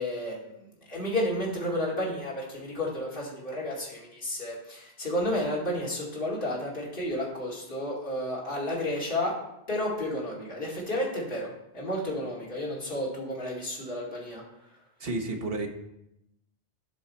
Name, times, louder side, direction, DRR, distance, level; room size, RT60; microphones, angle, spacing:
voice 1, 0.0-9.3 9.7-14.4, left 1 dB, 50° left, -5 dB, 2.6 m, -32 dB
voice 2, 15.0-15.7, right 2 dB, 55° right, 3 dB, 1.4 m, -31 dB
13.0 x 6.3 x 4.2 m, 0.85 s
omnidirectional pair, 1.2 m